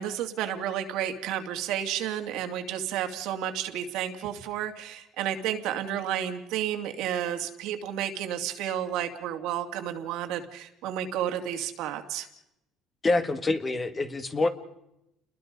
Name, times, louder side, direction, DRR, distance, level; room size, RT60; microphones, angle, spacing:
voice 1, 0.0-12.3, right 10 dB, 75° right, 5 dB, 2.5 m, -31 dB
voice 2, 13.0-14.5, left 2 dB, 20° left, 9 dB, 1.7 m, -26 dB
29.5 x 21.0 x 5.3 m, 0.85 s
cardioid pair, 145°, 0 cm